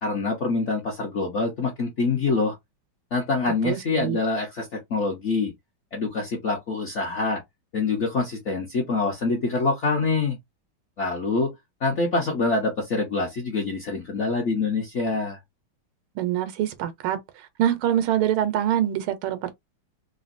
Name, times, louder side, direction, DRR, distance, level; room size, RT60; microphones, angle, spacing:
voice 1, 0.0-2.6 3.1-5.5 5.9-7.4 7.7-10.4 11.0-11.5 11.8-15.4, left 3 dB, 60° left, 0.7 m, -25 dB
voice 2, 3.6-4.2 16.2-17.2 17.6-19.5, right 11 dB, 90° right, 1.5 m, -24 dB
3.8 x 2.1 x 2.5 m
omnidirectional pair, 2.3 m